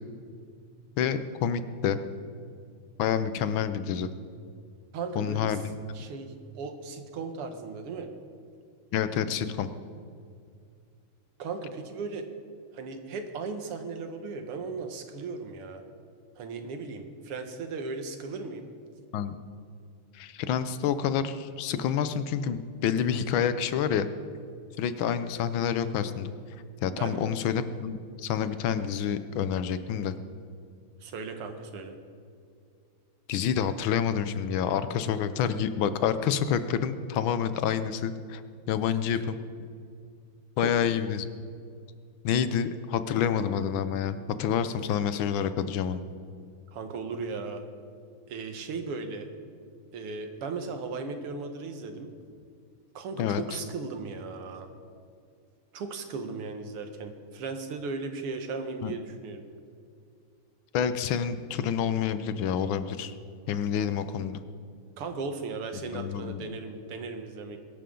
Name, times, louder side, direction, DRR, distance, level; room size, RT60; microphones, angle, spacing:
voice 1, 1.0-2.0 3.0-4.1 5.2-5.8 8.9-9.7 19.1-19.4 20.1-24.1 24.8-26.3 26.8-30.1 33.3-38.4 38.7-39.4 40.6-41.2 42.2-46.0 53.2-53.4 58.8-58.9 60.7-63.1 63.5-64.4 65.9-66.6, left 8 dB, 70° left, 12 dB, 1.4 m, -28 dB
voice 2, 4.9-5.6 5.9-8.1 11.4-12.2 12.7-15.8 16.4-18.7 26.9-27.2 31.0-32.0 40.6-40.7 46.7-47.6 48.3-49.3 49.9-52.1 52.9-54.7 55.7-59.4 65.0-67.6, right 4 dB, 85° right, 6 dB, 2.2 m, -36 dB
22.0 x 12.5 x 3.8 m, 2.3 s
omnidirectional pair, 2.4 m